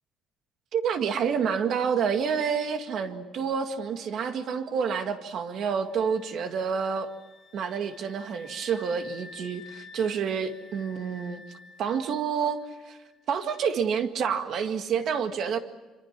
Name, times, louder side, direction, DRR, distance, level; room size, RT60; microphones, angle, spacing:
voice 1, 0.7-7.1 7.5-11.4 11.8-12.6 12.9-13.0 13.3-15.6, right 6 dB, 50° right, 7 dB, 2.0 m, -28 dB
sound 1, 5.9-12.7, left 3 dB, 40° left, 2.3 m, -50 dB
27.0 x 26.0 x 6.0 m, 1.2 s
cardioid pair, 170°, 0 cm